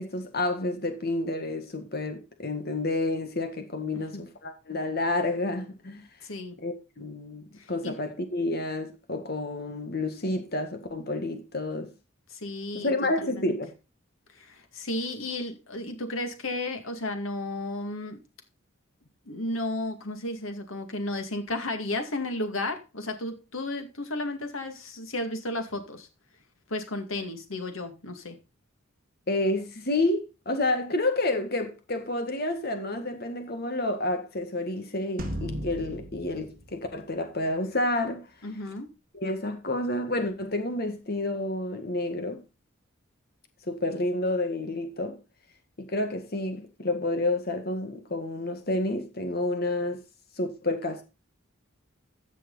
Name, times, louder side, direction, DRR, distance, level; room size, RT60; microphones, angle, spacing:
voice 1, 0.0-6.0 6.6-11.9 12.7-13.7 29.3-38.3 39.1-42.4 43.7-45.2 45.8-50.0 50.4-51.0, left 2 dB, 50° left, 1.8 m, -29 dB
voice 2, 6.2-6.6 7.6-8.0 12.3-13.5 14.3-18.2 19.3-26.1 26.7-28.4 38.4-38.9, left 2 dB, 90° left, 2.2 m, -33 dB
sound 1, 35.2-37.7, equal, 45° right, 3.1 m, -37 dB
15.5 x 6.2 x 4.0 m
head